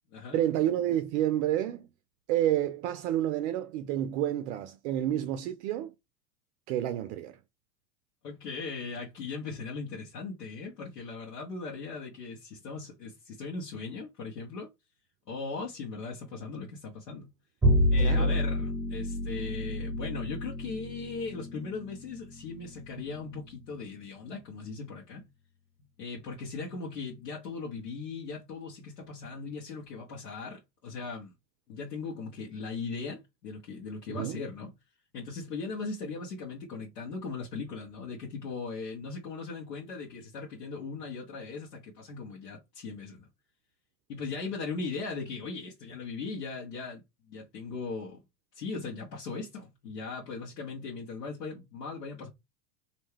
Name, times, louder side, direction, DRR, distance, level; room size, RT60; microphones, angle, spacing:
voice 1, 0.3-1.9 2.3-5.9 6.7-7.4 18.0-18.4 34.1-34.4, right 12 dB, 50° right, 0.5 m, -29 dB
voice 2, 8.2-14.7 15.3-17.3 17.9-25.3 26.0-31.3 31.7-34.7 35.1-43.3 44.1-47.0 47.3-48.2 48.5-52.3, left 4 dB, 80° left, 1.2 m, -39 dB
Bowed string instrument, 17.6-24.1, equal, 5° right, 0.7 m, -30 dB
2.7 x 2.2 x 3.2 m
hypercardioid pair, 100°, 47 cm